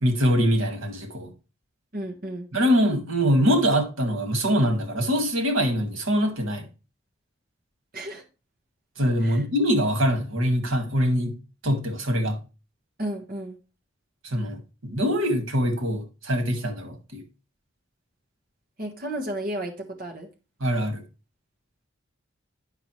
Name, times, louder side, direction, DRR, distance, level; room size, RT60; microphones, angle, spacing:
voice 1, 0.0-1.3 2.5-6.7 9.0-11.4 11.6-12.4 14.2-17.2 20.6-21.0, equal, 85° right, 1.9 m, -23 dB
voice 2, 1.9-2.5 7.9-8.2 9.2-9.4 13.0-13.6 18.8-20.3, right 1 dB, 45° right, 1.4 m, -33 dB
10.5 x 5.6 x 3.1 m
head